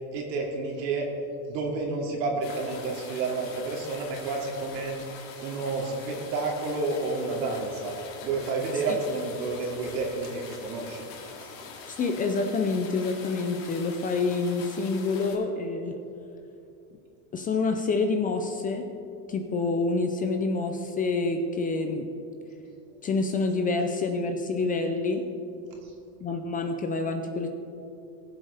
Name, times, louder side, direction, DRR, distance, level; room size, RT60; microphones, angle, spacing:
voice 1, 0.1-1.1 1.5-4.9 5.4-8.0 8.2-11.1 11.4-11.5, right 3 dB, 85° right, -1 dB, 2.7 m, -30 dB
sound 1, 2.4-15.3, left 5 dB, 75° left, 2.5 m, -44 dB
voice 2, 11.9-16.0 17.3-18.9 19.3-22.1 23.0-25.2 26.2-27.5, left 3 dB, 20° left, 5 dB, 0.4 m, -27 dB
19.5 x 7.5 x 3.4 m, 2.7 s
supercardioid pair, 130°, 49 cm